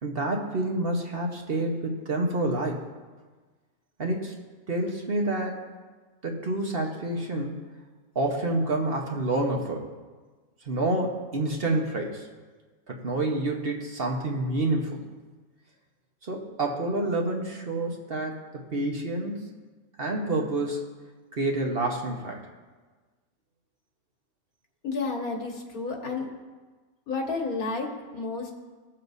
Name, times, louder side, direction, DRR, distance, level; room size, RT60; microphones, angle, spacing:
voice 1, 0.0-2.8 4.0-4.4 4.7-5.6 6.2-7.5 8.1-9.9 10.7-12.3 12.9-15.0 16.2-18.4 18.7-19.5 20.0-20.9 21.3-22.4, right 2 dB, 45° right, 0 dB, 1.3 m, -28 dB
voice 2, 24.8-26.3 27.1-28.5, left 3 dB, 85° left, 0 dB, 2.1 m, -31 dB
20.0 x 7.3 x 2.7 m, 1.4 s
omnidirectional pair, 1.5 m